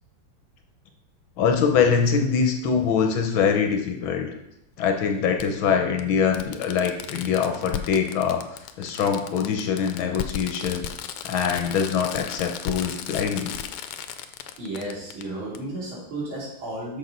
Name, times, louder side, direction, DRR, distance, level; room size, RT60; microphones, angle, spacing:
voice 1, 1.4-4.3 4.8-8.4 8.8-10.8 11.2-13.5, left 6 dB, 70° left, 4 dB, 1.5 m, -23 dB
Fireworks, 2.1-2.2 3.7-3.8 5.4-5.5 6.0-6.1 6.3-15.2 15.5-15.6, left 9 dB, 90° left, 1.6 m, -35 dB
voice 2, 14.6-17.0, right 1 dB, 65° right, -6 dB, 3.6 m, -33 dB
6.3 x 6.3 x 5.3 m, 0.85 s
omnidirectional pair, 2.4 m